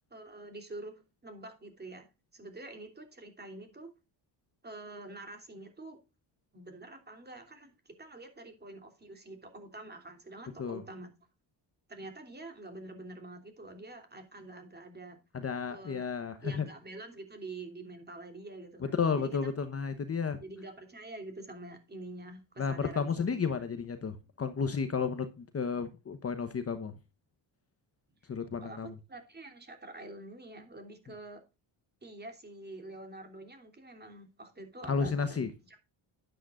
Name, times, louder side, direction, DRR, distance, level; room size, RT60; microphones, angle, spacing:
voice 1, 0.1-3.9 4.6-6.0 6.5-11.1 11.9-15.2 15.7-16.0 16.4-19.3 20.4-23.1 28.6-31.4 32.0-35.8, right 2 dB, 20° right, 3.1 m, -46 dB
voice 2, 15.3-16.6 18.8-20.4 22.6-26.9 28.3-28.9 34.9-35.5, left 5 dB, 30° left, 1.0 m, -32 dB
11.0 x 10.0 x 2.5 m
cardioid pair, 115°, 45 cm